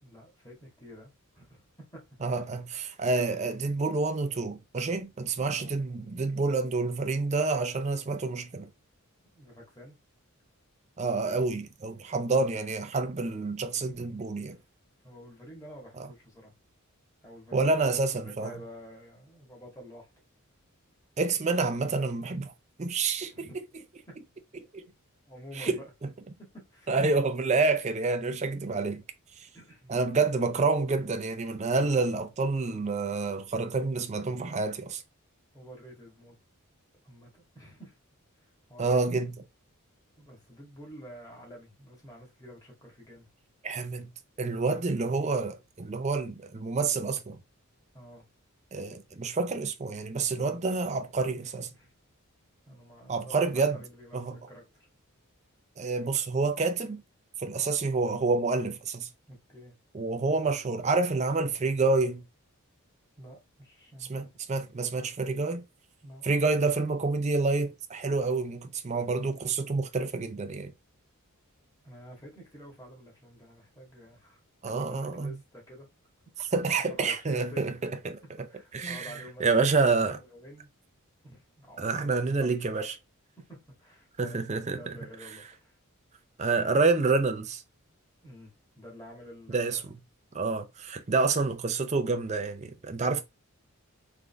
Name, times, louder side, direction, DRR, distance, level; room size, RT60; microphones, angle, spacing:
voice 1, 0.0-2.4 5.4-5.8 9.2-10.0 14.4-14.6 15.0-16.5 17.2-17.8 18.1-20.1 23.3-23.6 24.1-24.2 25.3-25.9 26.4-26.9 29.5-30.2 30.7-31.0 35.5-36.4 37.0-38.0 38.4-39.0 40.2-43.3 47.9-48.2 51.7-51.9 52.7-54.9 59.3-59.8 63.2-64.2 66.0-66.3 71.8-75.9 76.3-76.5 76.9-77.7 78.2-80.7 81.2-82.9 83.4-85.8 88.2-89.9, equal, 15° left, 1.8 m, -49 dB
voice 2, 2.2-8.7 11.0-14.6 16.0-16.1 17.5-18.5 21.2-22.5 22.8-23.5 24.7-24.8 25.6-25.8 26.9-29.0 29.4-29.5 29.9-35.0 38.8-39.3 43.6-44.1 44.4-47.4 48.7-51.7 53.1-53.8 54.1-54.4 55.8-57.0 57.4-59.1 59.9-62.2 64.1-65.6 66.2-70.7 74.6-75.4 76.4-78.2 78.7-80.2 81.8-83.0 84.2-84.9 86.4-87.6 89.5-90.0 90.3-93.2, right 3 dB, 30° right, 0.5 m, -28 dB
3.8 x 3.4 x 3.4 m
head